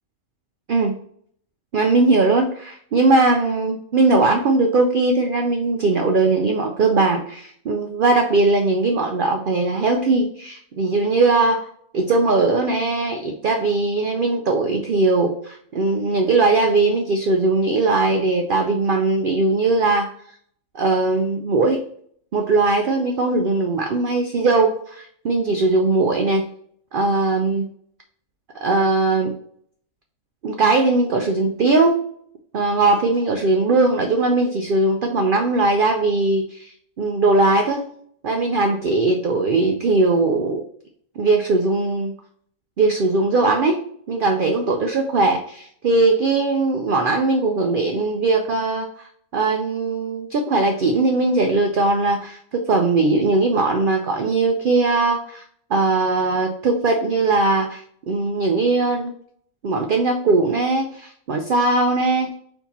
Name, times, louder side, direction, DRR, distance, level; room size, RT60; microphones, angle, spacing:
voice 1, 1.7-11.7 11.9-20.1 20.7-21.8 22.3-26.5 26.9-27.6 28.6-29.3 30.4-32.0 32.5-36.7 37.0-37.8 38.2-40.6 41.2-42.1 42.8-55.4 55.7-59.1 59.6-62.3, right 3 dB, 90° right, 4 dB, 0.4 m, -19 dB
4.5 x 2.8 x 4.0 m, 0.64 s
omnidirectional pair, 1.5 m